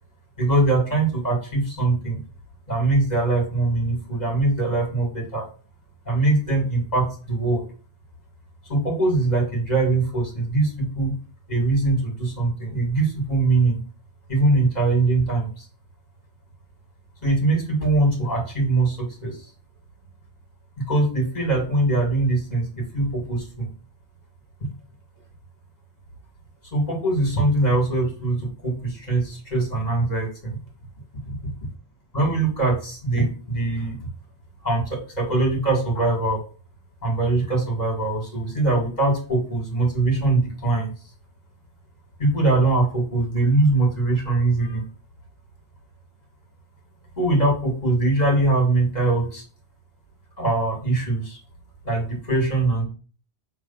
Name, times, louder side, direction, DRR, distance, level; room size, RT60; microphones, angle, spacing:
voice 1, 0.4-2.2 2.7-5.5 6.1-7.6 8.7-11.1 11.5-13.8 14.3-15.7 17.2-19.4 20.9-23.7 26.7-30.5 31.3-31.4 32.1-34.1 34.6-36.4 37.0-40.9 42.2-44.8 47.2-49.4 50.4-51.4 51.8-52.8, right 2 dB, 35° left, 1 dB, 2.3 m, -22 dB
6.9 x 3.2 x 5.7 m, 0.40 s
omnidirectional pair, 1.2 m